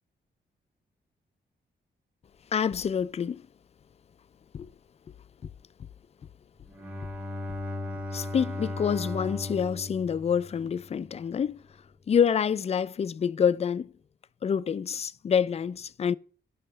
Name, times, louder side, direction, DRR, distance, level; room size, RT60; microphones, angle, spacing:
voice 1, 2.5-3.5 4.5-4.7 5.4-5.5 8.1-11.6 12.1-13.9 14.4-16.1, left 7 dB, 35° left, 0.4 m, -27 dB
Bowed string instrument, 6.7-11.2, left 2 dB, 5° right, 1.1 m, -37 dB
11.0 x 5.4 x 5.6 m
cardioid pair, 100°, 18 cm